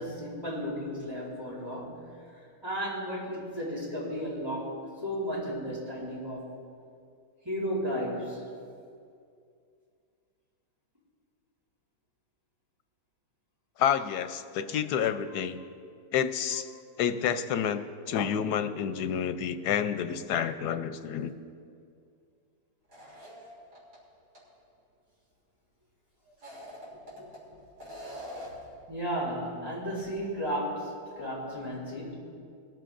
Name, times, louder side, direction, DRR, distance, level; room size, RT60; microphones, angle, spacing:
voice 1, 0.0-6.5 7.4-8.5 26.9-27.6 28.9-32.2, equal, 15° right, -6 dB, 4.2 m, -34 dB
voice 2, 13.8-15.6 16.1-16.7 17.0-17.8 18.1-21.3, left 8 dB, 90° left, 10 dB, 1.2 m, -29 dB
sound 1, 22.9-24.0 24.4-24.5 26.3-27.4 27.8-28.7, equal, 80° right, 3.6 m, -43 dB
21.5 x 13.5 x 2.5 m, 2.3 s
omnidirectional pair, 1.7 m